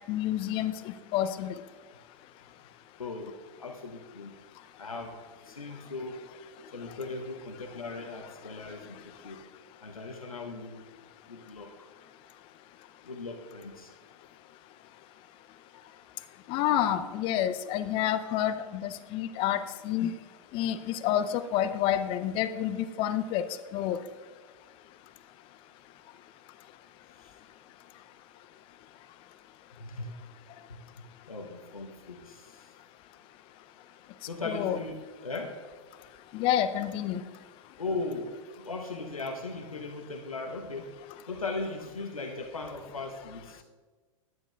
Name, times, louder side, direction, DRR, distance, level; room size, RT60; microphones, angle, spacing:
voice 1, 0.1-0.7 1.1-1.5 16.5-20.1 20.5-23.4 23.7-24.0 34.5-34.8 36.3-37.2, left 11 dB, 30° left, 12 dB, 0.4 m, -28 dB
voice 2, 3.0-3.3 3.6-4.3 4.8-5.2 5.4-6.2 6.7-9.4 9.8-10.9 11.3-11.9 13.0-13.9 27.2-27.4 29.7-30.1 30.7-30.8 31.3-32.7 34.2-35.0 35.2-35.6 37.8-40.9 41.3-43.6, left 3 dB, 85° left, 3 dB, 0.8 m, -38 dB
10.5 x 9.3 x 2.3 m, 1.4 s
figure-of-eight pair, 100°, 18 cm